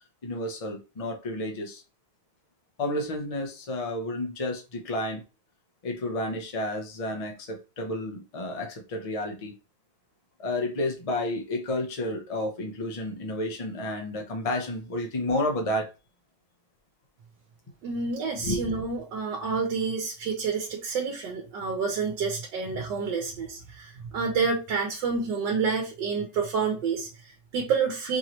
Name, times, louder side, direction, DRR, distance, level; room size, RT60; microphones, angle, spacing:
voice 1, 0.2-1.8 2.8-5.2 5.8-9.5 10.4-15.9 18.4-18.7, left 1 dB, 60° left, 0.3 m, -31 dB
voice 2, 17.8-28.2, right 5 dB, 75° right, 1.5 m, -29 dB
4.5 x 3.1 x 2.9 m
omnidirectional pair, 2.0 m